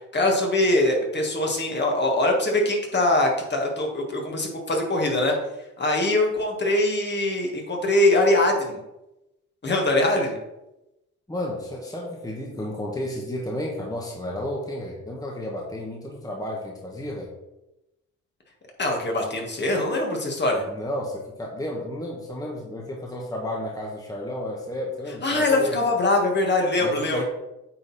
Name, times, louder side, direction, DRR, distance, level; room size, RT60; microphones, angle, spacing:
voice 1, 0.1-5.4 5.8-8.8 9.6-10.4 18.8-20.6 25.2-27.2, left 2 dB, 35° left, 1 dB, 1.9 m, -22 dB
voice 2, 11.3-17.3 20.7-25.8 26.8-27.2, left 1 dB, 10° left, -2 dB, 1.4 m, -32 dB
8.8 x 4.1 x 4.2 m, 0.95 s
cardioid pair, 90°, 30 cm